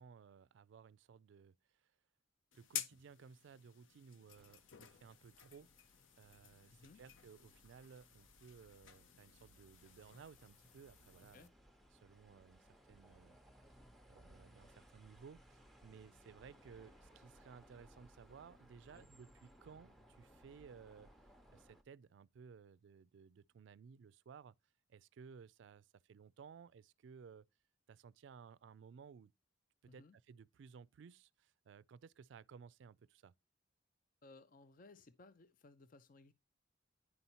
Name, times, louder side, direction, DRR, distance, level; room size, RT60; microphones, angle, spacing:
voice 1, 0.0-1.6 2.5-5.7 6.2-11.5 11.9-13.4 14.1-21.1 21.5-24.5 24.9-27.5 27.9-29.3 29.8-33.3, right 6 dB, 70° right, 0.3 m, -58 dB
sound 1, 2.5-11.5, left 9 dB, 90° left, 0.7 m, -52 dB
sound 2, 4.3-21.8, equal, ahead, 0.7 m, -65 dB
voice 2, 6.7-7.0 11.3-11.5 18.9-19.1 29.9-30.2 34.2-36.3, left 3 dB, 45° left, 0.4 m, -61 dB
9.8 x 5.5 x 2.8 m
head